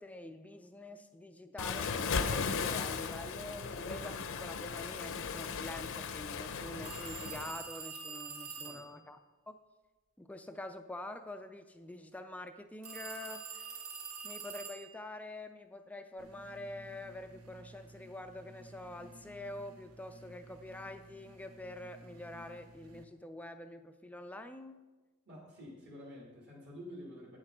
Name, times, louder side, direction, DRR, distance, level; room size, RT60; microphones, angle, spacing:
voice 1, 0.0-9.2 9.5-9.6 10.2-13.8 14.2-24.8, left 1 dB, 5° left, 8 dB, 0.3 m, -46 dB
Waves surf, 1.6-7.5, left 5 dB, 65° left, 0.6 m, -37 dB
sound 1, 6.8-8.9 12.8-15.0, right 6 dB, 75° right, 1.5 m, -45 dB
voice 2, 8.6-9.0 25.3-27.4, equal, 50° right, -3 dB, 2.2 m, -49 dB
sound 2, 16.2-23.0, right 1 dB, 90° right, 0.8 m, -55 dB
8.5 x 7.4 x 5.0 m, 1.2 s
head